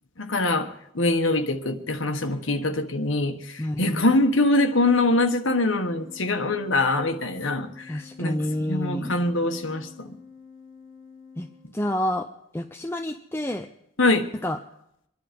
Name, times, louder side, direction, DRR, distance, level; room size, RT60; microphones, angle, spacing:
voice 1, 0.2-8.4 8.7-10.1 14.0-14.3, left 2 dB, 75° left, 1.4 m, -24 dB
voice 2, 3.6-4.0 7.9-9.1 11.4-11.5 11.7-12.3 12.5-13.7 14.4-14.6, left 1 dB, 10° left, 0.5 m, -28 dB
Organ, 5.6-12.2, left 5 dB, 40° left, 6.1 m, -49 dB
25.5 x 11.0 x 5.3 m
head